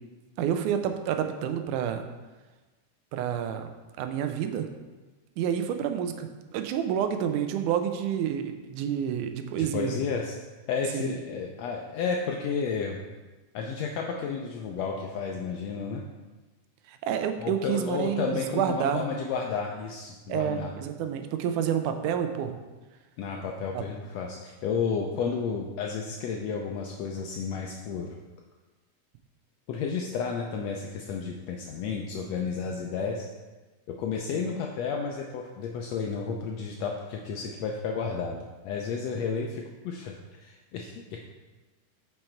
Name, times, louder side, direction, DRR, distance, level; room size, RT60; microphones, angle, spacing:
voice 1, 0.4-2.0 3.1-3.7 4.0-4.7 5.4-10.0 10.9-11.1 16.9-19.0 20.3-22.6 23.7-23.8, right 9 dB, 85° right, 7 dB, 2.2 m, -29 dB
voice 2, 9.5-10.3 10.7-13.0 13.5-16.0 17.4-20.7 23.2-28.1 29.7-33.3 33.9-41.2, left 5 dB, 80° left, 1 dB, 1.5 m, -32 dB
7.8 x 5.8 x 4.4 m, 1.2 s
omnidirectional pair, 3.5 m